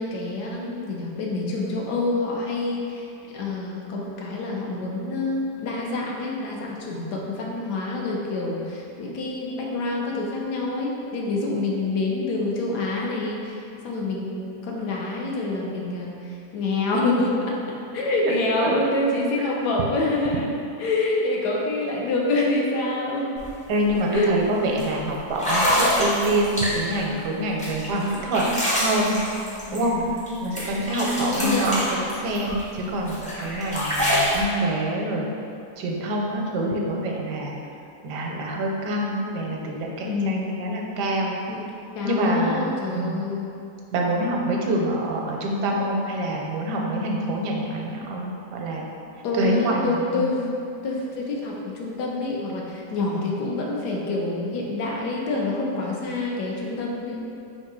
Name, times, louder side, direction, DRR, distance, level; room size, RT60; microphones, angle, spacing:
voice 1, 0.0-20.5 20.8-23.4 24.1-24.3 29.7-30.0 31.0-31.8 40.0-40.5 41.5-43.5 49.2-57.2, left 2 dB, 75° left, -2 dB, 1.2 m, -27 dB
sound 1, 23.4-23.5 23.8-24.1 24.8-24.9 25.3-27.0 27.6-30.3 30.6-32.6 33.1-34.4, equal, 10° left, 0.3 m, -25 dB
voice 2, 23.7-28.4 28.7-29.1 29.7-29.9 30.4-35.3 35.8-37.6 38.0-41.4 42.0-43.3 43.9-48.9 49.3-50.3, right 1 dB, 85° right, -1 dB, 1.2 m, -26 dB
3.7 x 2.7 x 4.7 m, 2.6 s
omnidirectional pair, 1.8 m